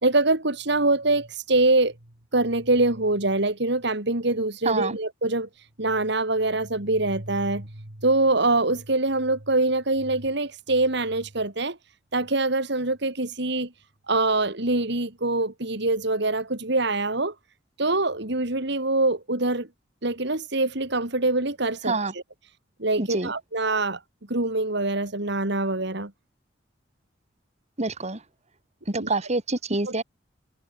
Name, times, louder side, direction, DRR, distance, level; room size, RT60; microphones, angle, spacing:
voice 1, 0.0-1.9 2.3-5.5 5.8-7.7 8.0-11.8 12.1-13.7 14.1-17.3 17.8-19.7 20.0-22.2 22.8-24.0 24.3-26.1 28.9-29.1 29.9-30.0, right 2 dB, 65° right, 3.3 m, -24 dB
voice 2, 4.7-5.0 21.9-22.1 23.0-23.3 27.8-28.2 28.9-30.0, right 3 dB, 40° right, 2.4 m, -26 dB
head